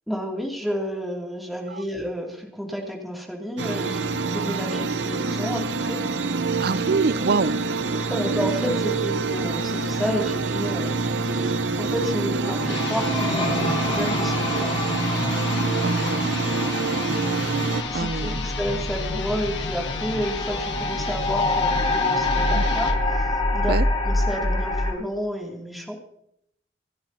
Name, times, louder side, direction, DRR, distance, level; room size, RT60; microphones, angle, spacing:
voice 1, 0.1-6.1 8.1-14.7 17.9-23.8 24.0-26.0, equal, ahead, -1 dB, 2.6 m, -31 dB
sound 1, 3.6-17.8, right 3 dB, 85° right, 0.9 m, -26 dB
voice 2, 6.6-7.6 15.8-16.3 17.9-18.4 22.5-22.7 23.7-23.8, right 4 dB, 60° right, 17 dB, 0.5 m, -25 dB
sound 2, 12.4-24.9, left 2 dB, 35° left, 4.4 m, -26 dB
sound 3, 12.6-23.0, left 4 dB, 85° left, 1.5 m, -34 dB
27.0 x 10.5 x 2.8 m, 0.74 s
head